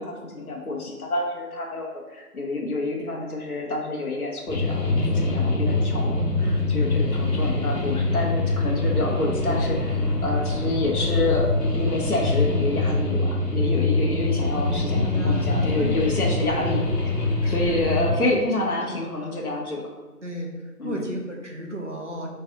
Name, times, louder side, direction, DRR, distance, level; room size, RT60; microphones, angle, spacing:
voice 1, 0.0-11.5 11.7-16.8 17.2-19.8 20.8-21.0, left 2 dB, 65° left, -1 dB, 0.9 m, -28 dB
sound 1, 4.5-18.2, left 2 dB, 85° left, 1.2 m, -24 dB
voice 2, 14.9-16.0 16.3-16.8 17.4-17.9 18.2-18.4 18.8-19.4 20.2-22.3, right 1 dB, 50° right, -1 dB, 0.9 m, -34 dB
5.7 x 3.2 x 2.7 m, 1.3 s
figure-of-eight pair, 180°, 47 cm